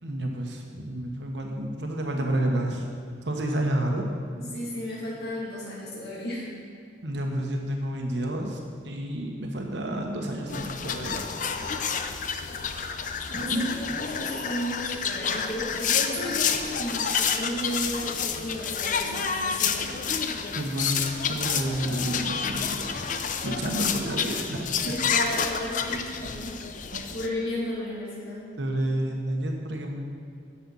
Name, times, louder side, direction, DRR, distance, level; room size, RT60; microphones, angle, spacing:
voice 1, 0.0-2.9 3.2-4.0 7.0-11.8 13.5-14.0 20.5-22.8 23.4-24.9 26.9-27.0 28.6-30.0, right 1 dB, 80° right, 1 dB, 1.2 m, -30 dB
voice 2, 4.3-6.5 13.3-20.4 24.8-26.6 27.1-28.5, equal, 60° left, -7 dB, 2.5 m, -34 dB
sound 1, 10.5-27.3, left 6 dB, 45° left, 0.6 m, -29 dB
9.9 x 7.5 x 5.6 m, 2.4 s
head